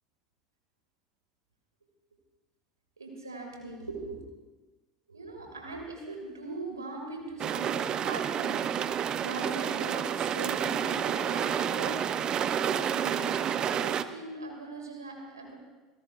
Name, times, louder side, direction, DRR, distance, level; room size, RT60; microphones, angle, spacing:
voice 1, 3.0-4.2 5.1-13.4 13.8-15.6, right 3 dB, 85° right, 1 dB, 2.4 m, -40 dB
sound 1, 7.4-14.0, right 9 dB, 40° right, 0.7 m, -30 dB
26.5 x 17.0 x 2.5 m, 1.2 s
figure-of-eight pair, 70°, 2 cm